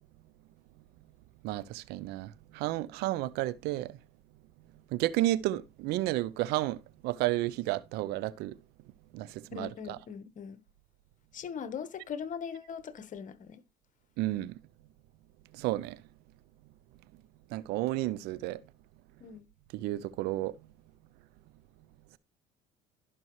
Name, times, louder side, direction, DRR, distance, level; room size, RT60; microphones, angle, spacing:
voice 1, 1.4-4.0 4.9-8.5 9.1-10.0 14.2-14.5 15.5-16.0 17.5-18.6 19.7-20.5, right 16 dB, 70° right, 0.6 m, -32 dB
voice 2, 9.5-10.6 11.3-13.6 19.2-19.5, left 7 dB, 50° left, 1.2 m, -40 dB
14.5 x 6.1 x 3.1 m
hypercardioid pair, 65°, 17 cm